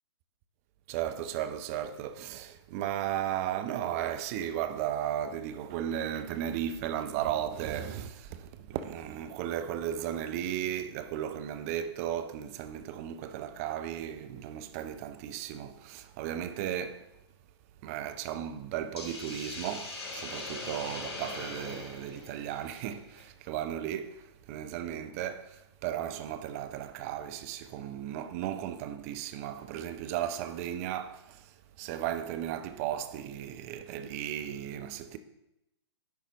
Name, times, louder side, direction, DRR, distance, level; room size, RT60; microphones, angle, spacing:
voice 1, 0.9-17.0 17.8-24.2 24.5-25.5 25.8-31.4 31.8-35.2, right 10 dB, 30° right, 0.6 m, -35 dB
Hiss, 19.0-23.2, left 2 dB, 65° left, 2.8 m, -41 dB
10.5 x 4.1 x 4.0 m
figure-of-eight pair, 120°, 15 cm